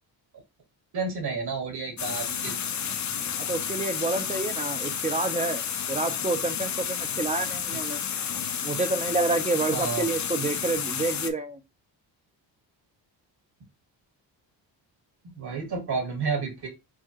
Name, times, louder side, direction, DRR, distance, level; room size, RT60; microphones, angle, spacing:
voice 1, 0.9-2.6 7.7-7.8 9.7-10.1 15.2-16.7, right 4 dB, 60° right, 2.1 m, -31 dB
sound 1, 2.0-11.3, left 7 dB, 40° left, 0.6 m, -31 dB
voice 2, 3.4-8.0 8.6-11.6, right 3 dB, 15° right, 0.6 m, -29 dB
4.6 x 2.5 x 2.9 m
cardioid pair, 75°, 44 cm